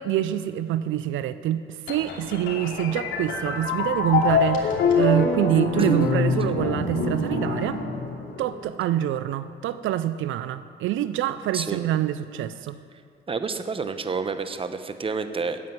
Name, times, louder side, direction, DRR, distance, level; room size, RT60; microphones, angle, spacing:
voice 1, 0.0-7.8 8.4-12.8, right 12 dB, 80° right, 13 dB, 0.4 m, -26 dB
sound 1, 1.9-8.6, left 4 dB, 75° left, 2.7 m, -25 dB
voice 2, 5.5-6.0 11.5-11.8 13.3-15.6, right 4 dB, 25° right, 10 dB, 0.8 m, -29 dB
9.7 x 7.4 x 9.3 m, 2.3 s
cardioid pair, 90°, 20 cm